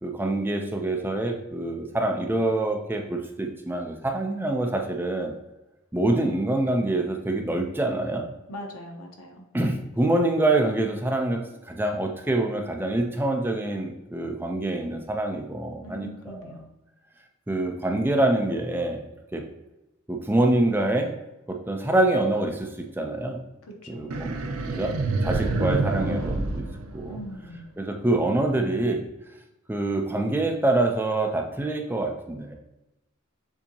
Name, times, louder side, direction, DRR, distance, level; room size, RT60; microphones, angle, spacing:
voice 1, 0.0-5.3 5.9-8.3 9.5-16.6 17.5-19.0 19.3-19.4 20.1-21.1 21.5-22.7 23.0-23.4 23.9-24.3 24.7-26.7 26.9-27.2 27.8-29.1 29.7-32.5, right 2 dB, 10° right, 2 dB, 0.4 m, -25 dB
voice 2, 8.5-9.4 15.8-16.7 23.6-24.1 27.1-27.7, equal, 90° left, 2 dB, 1.0 m, -41 dB
sound 1, 24.1-27.6, right 2 dB, 85° right, 0.6 m, -27 dB
6.9 x 2.8 x 2.7 m, 0.96 s
head